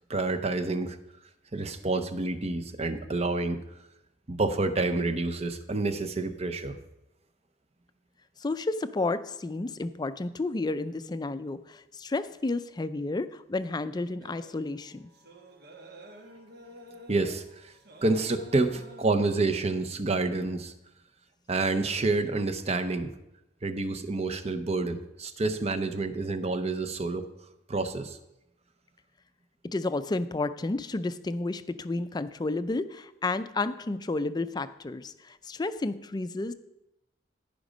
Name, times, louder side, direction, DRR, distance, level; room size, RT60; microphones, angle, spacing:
voice 1, 0.1-1.0 1.5-3.6 4.3-6.8 17.1-17.7 18.0-20.7 21.5-23.1 23.6-27.3 27.7-28.2, right 3 dB, 35° right, 10 dB, 0.7 m, -28 dB
voice 2, 8.4-15.1 29.6-36.5, left 2 dB, 25° left, 12 dB, 0.4 m, -31 dB
sound 1, 14.2-19.6, equal, 60° right, 1.2 m, -50 dB
15.0 x 5.2 x 5.1 m, 0.89 s
head